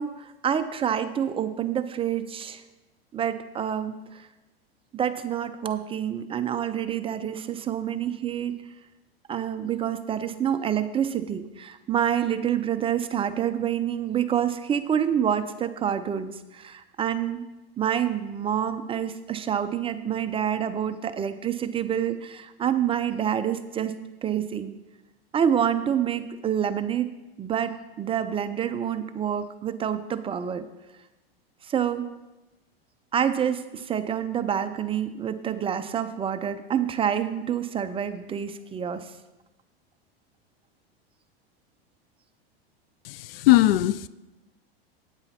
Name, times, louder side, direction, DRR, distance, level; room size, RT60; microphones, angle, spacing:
voice 1, 0.0-2.6 3.1-4.3 4.9-8.6 9.3-17.5 17.8-23.9 24.2-24.8 25.3-27.1 27.4-30.7 31.6-32.1 33.1-39.1, right 9 dB, 20° right, 10 dB, 0.5 m, -27 dB
voice 2, 43.1-44.1, left 16 dB, 70° left, 17 dB, 0.4 m, -20 dB
9.0 x 8.8 x 4.2 m, 1.0 s
hypercardioid pair, 115°, 31 cm